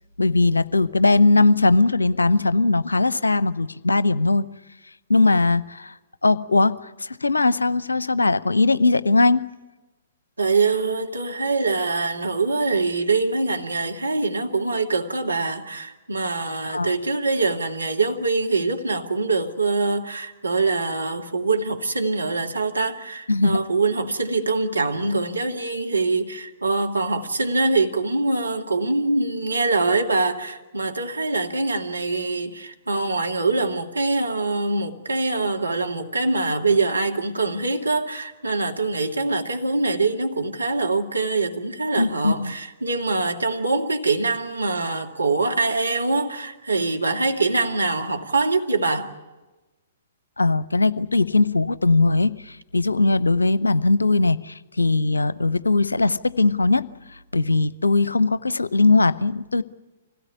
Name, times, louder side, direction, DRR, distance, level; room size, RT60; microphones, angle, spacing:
voice 1, 0.2-4.5 5.1-5.9 6.2-9.5 16.7-16.9 23.3-23.6 42.0-42.5 50.4-56.9 57.3-59.6, left 3 dB, 75° left, 0.7 m, -20 dB
voice 2, 10.4-49.1, right 3 dB, 80° right, 2.0 m, -24 dB
25.5 x 17.5 x 9.8 m
figure-of-eight pair, 115°, 0 cm